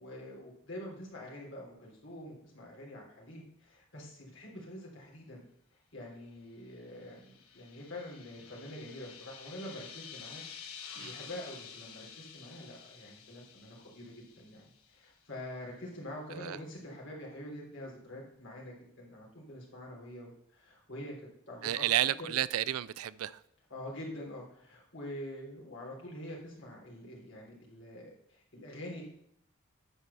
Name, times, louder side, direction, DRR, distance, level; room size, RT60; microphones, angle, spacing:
voice 1, 0.0-5.4 5.9-10.4 10.9-21.8 23.7-29.0, left 1 dB, 55° left, 3.3 m, -46 dB
sound 1, 6.7-15.1, left 7 dB, 80° left, 1.5 m, -50 dB
voice 2, 21.6-23.4, right 12 dB, 80° right, 0.4 m, -31 dB
9.7 x 4.6 x 6.8 m
head